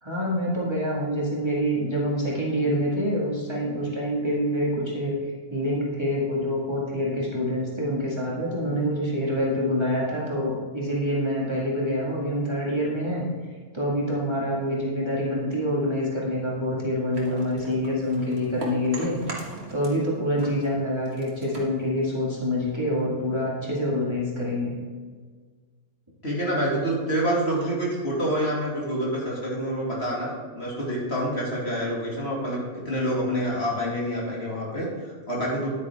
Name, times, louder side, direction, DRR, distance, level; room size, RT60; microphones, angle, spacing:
voice 1, 0.0-13.2 13.7-24.8, equal, 20° right, -6 dB, 2.1 m, -26 dB
sound 1, 17.1-20.1 20.3-22.7, right 2 dB, 45° right, 1.8 m, -40 dB
voice 2, 26.2-35.7, equal, 45° left, -5 dB, 2.7 m, -27 dB
10.0 x 9.1 x 3.6 m, 1.5 s
omnidirectional pair, 1.5 m